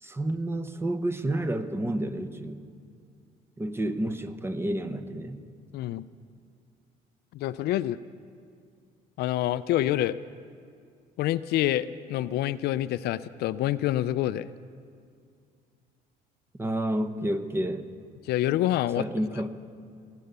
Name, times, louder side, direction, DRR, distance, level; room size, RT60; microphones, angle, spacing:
voice 1, 0.0-2.6 3.6-5.4 16.6-17.9 19.0-19.5, right 1 dB, 15° right, 9 dB, 0.8 m, -30 dB
voice 2, 5.7-6.0 7.3-8.0 9.2-10.2 11.2-14.5 18.3-19.0, left 13 dB, 75° left, 15 dB, 0.4 m, -27 dB
19.5 x 9.2 x 6.8 m, 2.3 s
cardioid pair, 110°, 17 cm